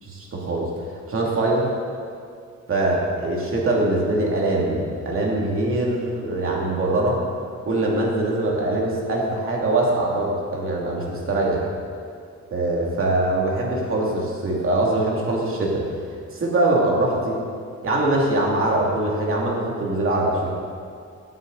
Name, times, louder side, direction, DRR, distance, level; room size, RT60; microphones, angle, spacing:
voice 1, 0.0-0.7 1.1-1.7 2.7-7.2 7.6-11.6 12.5-16.0 16.3-17.4 17.8-20.5, right 2 dB, 45° right, -3 dB, 2.5 m, -22 dB
16.5 x 9.1 x 4.0 m, 2.3 s
wide cardioid pair, 150°, 29 cm